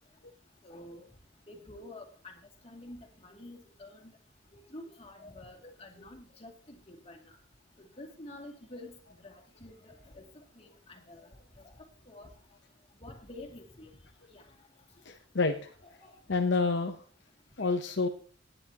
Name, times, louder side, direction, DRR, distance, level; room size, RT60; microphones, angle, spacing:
voice 1, 0.6-1.0 1.5-4.2 4.5-7.2 7.8-10.3 10.6-11.3 11.6-11.7 12.1-12.3 13.0-13.9 14.3-14.4 15.8-16.1 17.6-17.7, left 1 dB, 30° left, 2 dB, 2.5 m, -49 dB
voice 2, 15.0-15.7 16.3-17.0 17.6-18.1, left 3 dB, 65° left, 5 dB, 0.8 m, -28 dB
18.0 x 10.0 x 2.9 m, 0.42 s
head